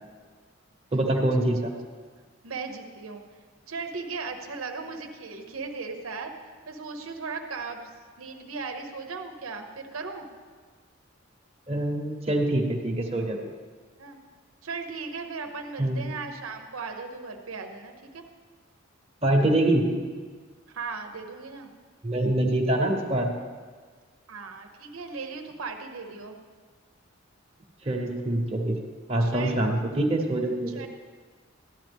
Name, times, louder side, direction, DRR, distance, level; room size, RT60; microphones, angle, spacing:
voice 1, 0.9-1.7 11.7-13.5 15.8-16.1 19.2-19.9 22.0-23.3 27.8-28.8 29.1-30.7, right 1 dB, 30° right, -1 dB, 1.1 m, -25 dB
voice 2, 2.4-3.2 3.7-6.3 6.7-7.9 8.2-10.3 14.0-14.2 14.6-18.2 20.7-21.7 24.3-26.4 29.2-29.5 30.7-30.9, right 4 dB, 90° right, 4 dB, 0.9 m, -37 dB
13.0 x 10.0 x 3.5 m, 1.5 s
head